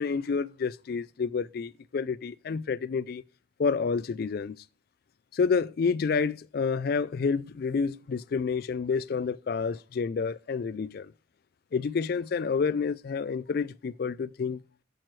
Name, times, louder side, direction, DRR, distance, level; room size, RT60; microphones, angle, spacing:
voice 1, 0.0-3.2 3.6-4.6 5.3-11.1 11.7-14.6, left 5 dB, 50° left, 0.3 m, -29 dB
8.8 x 7.6 x 3.2 m
head